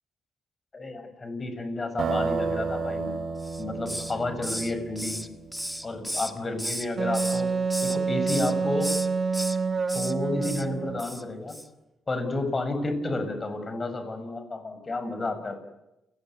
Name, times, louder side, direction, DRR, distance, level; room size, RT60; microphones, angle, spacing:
voice 1, 0.7-3.1 3.6-5.2 5.8-7.5 7.8-8.9 9.9-11.6 12.1-15.6, left 2 dB, 30° left, 8 dB, 7.3 m, -31 dB
sound 1, 2.0-5.8, right 4 dB, 55° right, 4.1 m, -32 dB
Hiss, 3.4-4.2 4.4-6.9 7.1-8.0 8.3-8.5 8.8-9.6 9.9-10.1 10.4-10.7 11.0-11.2 11.5-11.7, equal, ahead, 1.7 m, -34 dB
Wind instrument woodwind instrument, 7.0-11.1, right 4 dB, 35° right, 1.2 m, -27 dB
29.5 x 20.0 x 9.6 m, 0.92 s
cardioid pair, 90°, 0 cm